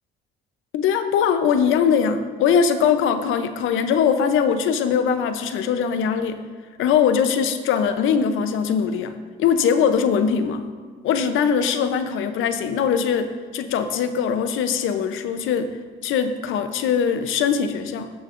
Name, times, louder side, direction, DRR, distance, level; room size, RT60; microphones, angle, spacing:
voice 1, 0.7-6.4 6.8-10.6 11.0-15.7 16.0-18.1, left 7 dB, 85° left, 9 dB, 0.7 m, -21 dB
17.0 x 6.4 x 2.6 m, 1.5 s
cardioid pair, 90°, 20 cm